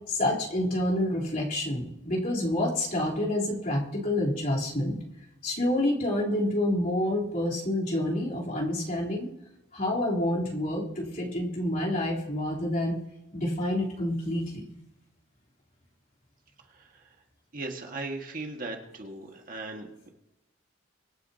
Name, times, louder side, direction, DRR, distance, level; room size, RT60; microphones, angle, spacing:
voice 1, 0.0-5.0 5.4-9.3 9.7-13.0 13.3-14.7, left 1 dB, 45° left, -5 dB, 3.5 m, -28 dB
voice 2, 16.7-17.2 17.5-20.1, right 2 dB, 45° right, 2 dB, 1.7 m, -38 dB
24.5 x 9.5 x 2.8 m, 0.94 s
head